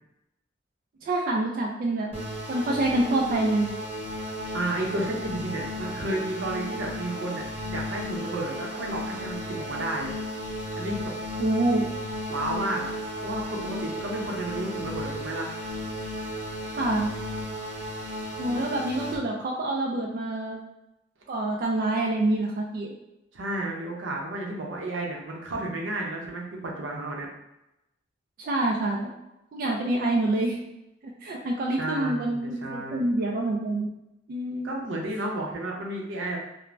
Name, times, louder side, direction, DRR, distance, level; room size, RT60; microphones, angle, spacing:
voice 1, 1.0-2.1 2.5-3.7 11.4-11.9 16.8-17.1 18.4-20.6 21.3-22.9 28.4-29.1 29.5-30.6 31.0-33.9 34.3-34.7, right 2 dB, 50° right, -1 dB, 0.3 m, -26 dB
sound 1, 2.1-19.2, equal, 30° right, 0.8 m, -34 dB
voice 2, 4.5-10.1 10.8-11.1 12.3-12.9 13.2-15.5 23.3-27.3 31.8-33.0 34.6-36.4, right 1 dB, 85° right, -1 dB, 0.6 m, -32 dB
2.5 x 2.0 x 3.2 m, 0.90 s
head